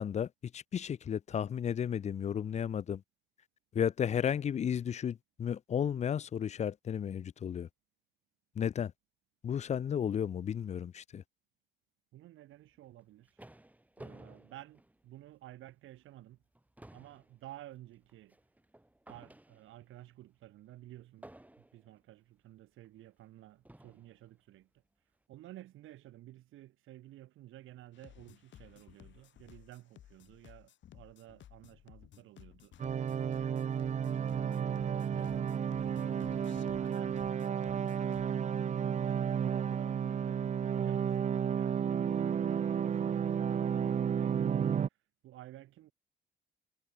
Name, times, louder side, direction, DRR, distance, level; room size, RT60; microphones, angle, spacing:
voice 1, 0.0-3.0 3.7-7.7 8.6-8.9 9.4-11.2, left 8 dB, 35° left, 0.4 m, -33 dB
voice 2, 12.1-13.5 14.0-16.4 16.9-18.4 19.1-21.3 21.6-24.7 25.3-33.0 33.3-35.8 36.3-38.3 38.6-40.4 40.7-44.9 45.2-45.9, right 15 dB, 85° right, 7.5 m, -54 dB
sound 1, 12.8-15.5 16.0-16.1 16.4-20.0 21.2-22.0 22.8-22.9 23.6-24.2, right 1 dB, 5° right, 3.0 m, -55 dB
sound 2, 27.9-38.4, left 11 dB, 70° left, 4.4 m, -57 dB
sound 3, 32.8-44.9, right 8 dB, 35° right, 0.5 m, -32 dB
cardioid pair, 90°, 20 cm